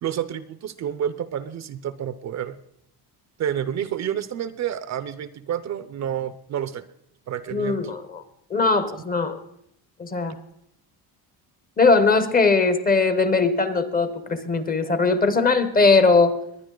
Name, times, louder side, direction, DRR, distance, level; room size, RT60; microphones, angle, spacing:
voice 1, 0.0-2.6 3.4-6.8 7.3-7.8, right 9 dB, 45° right, 14 dB, 0.5 m, -29 dB
voice 2, 7.5-8.2 8.5-9.4 10.0-10.4 11.8-16.4, left 3 dB, 20° left, 12 dB, 0.7 m, -20 dB
22.0 x 9.7 x 3.8 m, 0.74 s
cardioid pair, 180°, 40 cm